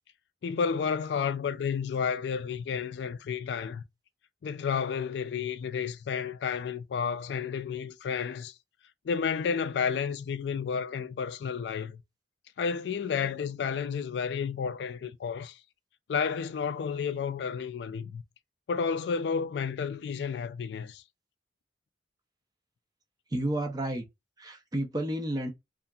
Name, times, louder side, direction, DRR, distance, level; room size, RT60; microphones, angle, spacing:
voice 1, 0.4-3.8 4.4-8.5 9.1-12.0 12.6-15.6 16.1-18.2 18.7-21.0, left 6 dB, 65° left, 0.3 m, -31 dB
voice 2, 23.3-24.0 24.4-25.5, right 1 dB, 20° right, 0.5 m, -31 dB
2.8 x 2.4 x 2.2 m
head